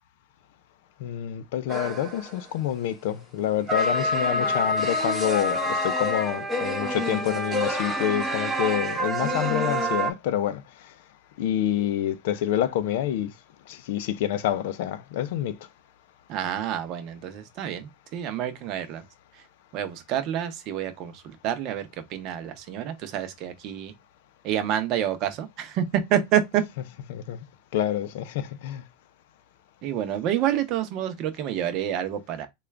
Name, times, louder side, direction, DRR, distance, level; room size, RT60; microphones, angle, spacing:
voice 1, 1.0-10.9 11.4-13.3 13.7-15.6 27.1-27.4 27.7-28.8, left 11 dB, 70° left, 0.4 m, -27 dB
sound 1, 1.7-2.5 3.7-10.1, equal, 10° right, 0.8 m, -27 dB
voice 2, 16.3-19.0 19.7-21.8 22.1-23.9 24.4-25.8 26.1-26.6 29.8-32.5, right 10 dB, 45° right, 0.7 m, -28 dB
3.7 x 2.3 x 3.2 m
supercardioid pair, 155°, 0 cm